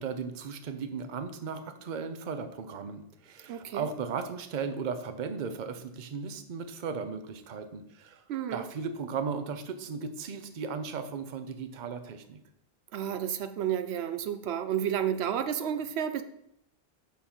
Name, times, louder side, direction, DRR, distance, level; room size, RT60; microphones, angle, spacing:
voice 1, 0.0-8.2 8.5-12.4, right 5 dB, 50° right, 9 dB, 0.8 m, -36 dB
voice 2, 3.5-3.9 8.3-8.7 12.9-16.2, right 9 dB, 85° right, 10 dB, 0.8 m, -31 dB
7.3 x 5.5 x 4.4 m, 0.77 s
omnidirectional pair, 1.1 m